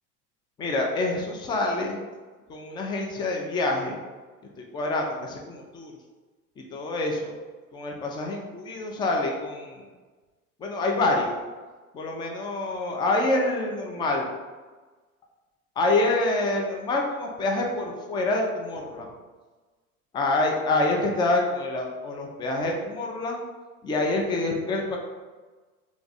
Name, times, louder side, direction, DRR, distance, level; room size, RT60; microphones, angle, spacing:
voice 1, 0.6-2.0 2.5-4.0 4.7-5.9 6.6-7.4 7.7-9.9 10.6-11.3 11.9-14.3 15.8-19.1 20.1-23.4 23.8-25.0, left 2 dB, 10° left, 1 dB, 0.4 m, -26 dB
3.4 x 3.0 x 3.9 m, 1.3 s
figure-of-eight pair, 75°, 45 cm